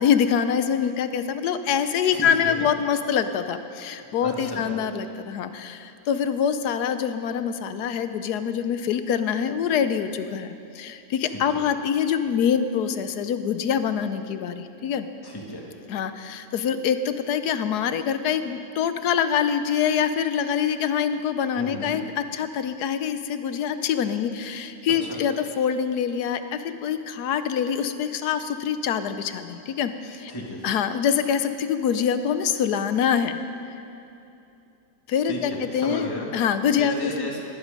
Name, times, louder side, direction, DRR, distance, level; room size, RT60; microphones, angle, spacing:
voice 1, 0.0-15.1 15.9-30.3 30.6-33.4 35.1-37.3, left 8 dB, 70° left, 10 dB, 1.2 m, -25 dB
voice 2, 2.1-2.7 4.2-4.8 11.3-11.6 15.2-15.7 21.5-22.0 25.0-25.2 30.3-30.7 35.2-36.3 36.8-37.4, left 1 dB, 15° left, -2 dB, 2.1 m, -34 dB
19.0 x 11.5 x 5.3 m, 2.7 s
omnidirectional pair, 1.8 m